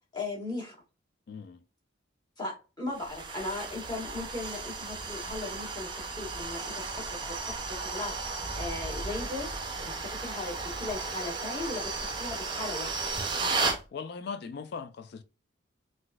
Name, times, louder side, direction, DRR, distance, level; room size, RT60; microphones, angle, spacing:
voice 1, 0.1-0.8 2.4-8.1 8.5-13.1, left 2 dB, 20° left, 1.3 m, -38 dB
voice 2, 1.3-1.6 13.7-15.2, left 5 dB, 55° left, 0.3 m, -39 dB
sound 1, 2.9-13.8, right 3 dB, 25° right, 0.5 m, -34 dB
4.0 x 2.5 x 2.3 m
head